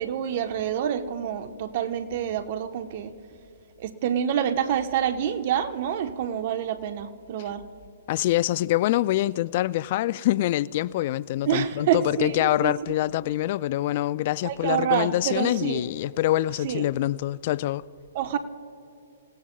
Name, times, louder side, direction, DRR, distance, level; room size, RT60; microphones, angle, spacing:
voice 1, 0.0-3.1 3.8-7.6 11.5-12.7 14.4-15.8 16.6-16.9 18.1-18.4, right 9 dB, 50° right, 1.0 m, -27 dB
voice 2, 8.1-17.8, left 15 dB, 45° left, 0.3 m, -25 dB
27.5 x 17.0 x 2.3 m
hypercardioid pair, 130°, 0 cm